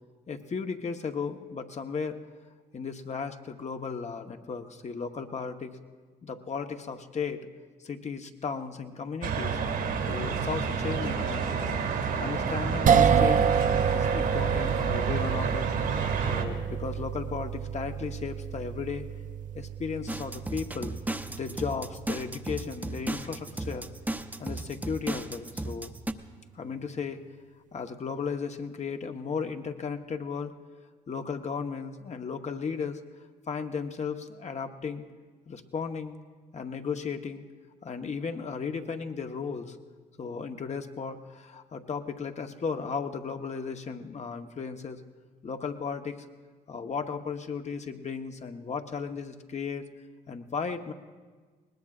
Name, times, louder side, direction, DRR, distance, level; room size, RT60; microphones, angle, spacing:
voice 1, 0.3-2.2 2.7-5.7 6.2-7.5 7.8-9.6 10.1-13.5 13.9-15.7 16.3-19.0 19.5-21.0 21.3-23.9 24.4-25.9 26.5-27.2 27.7-30.5 31.1-33.0 33.5-35.0 35.5-36.2 36.5-37.4 37.8-39.8 40.2-45.0 45.4-46.2 46.7-49.9 50.3-50.9, left 5 dB, 40° left, 6 dB, 1.0 m, -35 dB
sound 1, 9.2-16.4, right 5 dB, 75° right, 2.1 m, -30 dB
sound 2, 12.9-25.2, right 7 dB, 50° right, 0.6 m, -29 dB
sound 3, 20.1-26.1, right 2 dB, 10° right, 0.8 m, -35 dB
21.0 x 19.0 x 2.5 m, 1.5 s
supercardioid pair, 60°, 17 cm